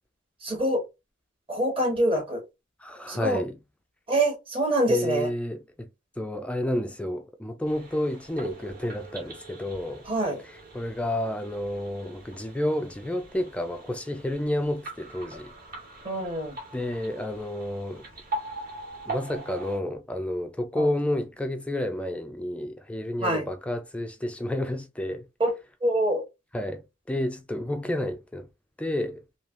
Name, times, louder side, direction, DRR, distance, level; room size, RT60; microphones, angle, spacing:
voice 1, 0.4-0.8 1.5-2.4 3.1-3.4 4.1-5.3 10.1-10.4 16.0-16.6 20.8-20.9 23.2-23.4 25.4-25.5 25.8-26.2, right 1 dB, 30° right, 1.1 m, -25 dB
voice 2, 2.8-3.6 4.9-5.9 6.2-10.1 10.4-15.5 16.7-18.1 19.1-25.3 26.5-28.5 28.8-29.2, left 1 dB, 5° left, 0.3 m, -30 dB
sound 1, 7.6-19.8, right 2 dB, 50° right, 1.4 m, -41 dB
3.2 x 2.7 x 2.4 m
head